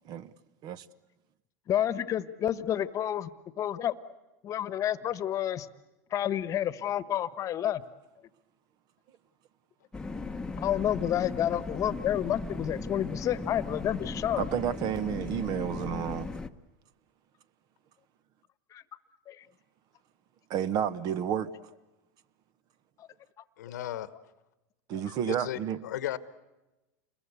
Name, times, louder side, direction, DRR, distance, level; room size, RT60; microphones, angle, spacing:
voice 1, 1.7-3.3 3.6-4.0 4.4-5.7 6.1-7.8 10.6-14.5 18.7-18.8 19.3-19.5 23.0-23.1 23.8-23.9, left 11 dB, 35° left, 1.2 m, -30 dB
sound 1, 9.9-16.5, left 3 dB, 10° left, 1.0 m, -37 dB
voice 2, 14.4-16.3 20.5-21.5 24.9-25.8, right 9 dB, 50° right, 1.1 m, -31 dB
voice 3, 23.6-24.1 25.2-26.2, left 12 dB, 85° left, 1.2 m, -35 dB
28.5 x 21.5 x 8.2 m
supercardioid pair, 115°, 9 cm